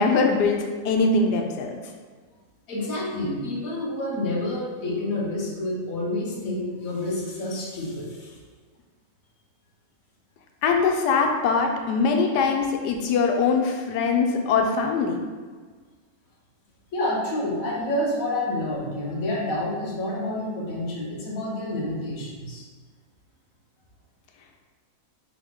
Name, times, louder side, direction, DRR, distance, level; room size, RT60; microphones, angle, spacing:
voice 1, 0.0-1.8 10.6-15.2, left 4 dB, 90° left, 3 dB, 1.2 m, -22 dB
voice 2, 2.7-8.4 16.9-22.6, left 1 dB, 60° left, -3 dB, 1.3 m, -28 dB
3.8 x 3.7 x 3.5 m, 1.5 s
omnidirectional pair, 1.7 m